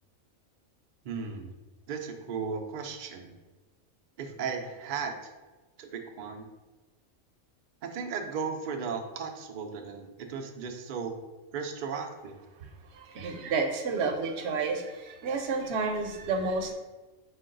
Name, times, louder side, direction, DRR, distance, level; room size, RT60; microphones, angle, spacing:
voice 1, 1.0-1.5 1.9-3.4 4.2-5.3 5.8-6.5 7.8-11.1 11.5-12.4 13.4-13.6, right 5 dB, 85° right, 3 dB, 0.4 m, -36 dB
voice 2, 13.2-14.8 15.2-16.7, right 4 dB, 65° right, 4 dB, 0.8 m, -30 dB
5.1 x 2.3 x 3.7 m, 1.2 s
omnidirectional pair, 1.4 m